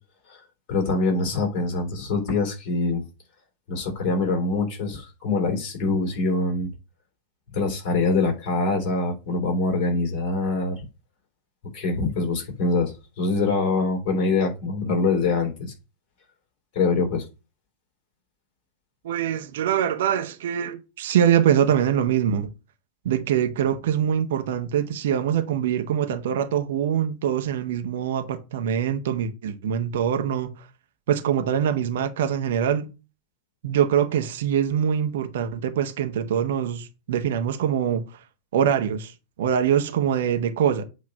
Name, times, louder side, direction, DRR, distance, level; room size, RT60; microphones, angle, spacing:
voice 1, 0.7-3.0 3.7-6.7 7.5-10.8 11.7-15.7 16.7-17.3, left 3 dB, 40° left, 3.5 m, -24 dB
voice 2, 19.0-22.5 23.0-30.5 31.1-32.9 33.6-38.0 38.5-39.1 39.4-40.8, right 9 dB, 55° right, 1.0 m, -23 dB
8.1 x 3.1 x 6.4 m
figure-of-eight pair, 90°, 0 cm